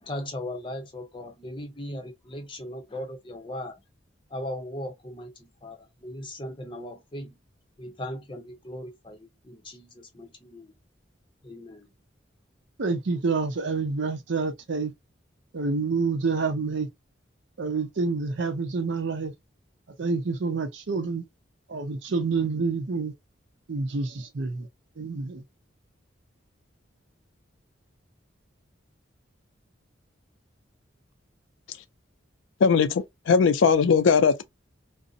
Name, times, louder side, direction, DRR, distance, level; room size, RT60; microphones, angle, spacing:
voice 1, 0.0-3.8 4.3-7.4 7.8-10.7 11.4-11.9, left 1 dB, 25° left, 0.6 m, -38 dB
voice 2, 12.8-14.9 15.5-16.9 17.6-19.3 20.0-21.2 21.7-23.1 23.7-24.7 25.0-25.4, right 4 dB, 70° right, 0.6 m, -28 dB
voice 3, 32.6-34.4, left 5 dB, 80° left, 0.4 m, -20 dB
2.5 x 2.0 x 2.4 m
head